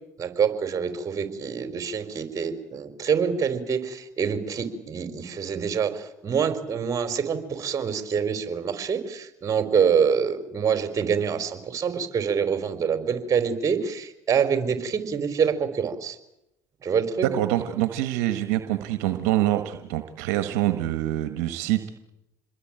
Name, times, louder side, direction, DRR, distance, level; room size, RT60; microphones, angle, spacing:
voice 1, 0.2-16.2 16.8-17.3, right 6 dB, 40° right, 9 dB, 4.4 m, -26 dB
voice 2, 17.2-21.9, right 14 dB, 80° right, 9 dB, 1.5 m, -25 dB
27.5 x 21.5 x 9.0 m, 0.88 s
supercardioid pair, 75°, 8 cm